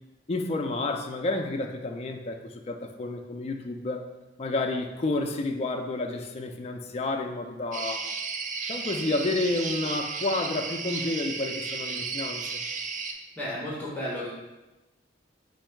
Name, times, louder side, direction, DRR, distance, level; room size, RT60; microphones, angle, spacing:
voice 1, 0.3-4.0 4.4-8.1 8.7-12.4, left 2 dB, 35° left, 3 dB, 0.4 m, -30 dB
sound 1, 7.7-13.1, right 5 dB, 40° right, 0.4 m, -34 dB
voice 2, 13.4-14.3, left 1 dB, 10° left, -6 dB, 0.8 m, -33 dB
4.6 x 2.6 x 4.4 m, 1.1 s
head